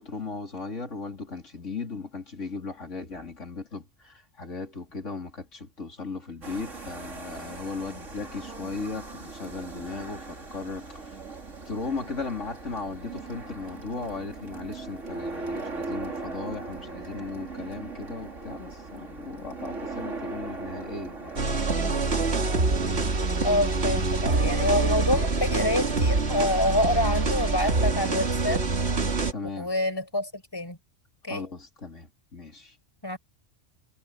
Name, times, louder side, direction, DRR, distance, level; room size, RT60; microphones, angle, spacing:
voice 1, 0.0-10.9 11.7-21.4 21.8-22.1 29.3-29.7 31.3-32.8, left 4 dB, 70° left, 3.6 m, -37 dB
sound 1, 6.4-24.9, right 3 dB, 75° right, 3.5 m, -39 dB
sound 2, 21.4-29.3, right 3 dB, 55° right, 2.1 m, -25 dB
voice 2, 23.4-28.6 29.6-30.8 31.2-31.5 33.0-33.2, left 1 dB, 20° left, 5.1 m, -27 dB
omnidirectional pair, 1.3 m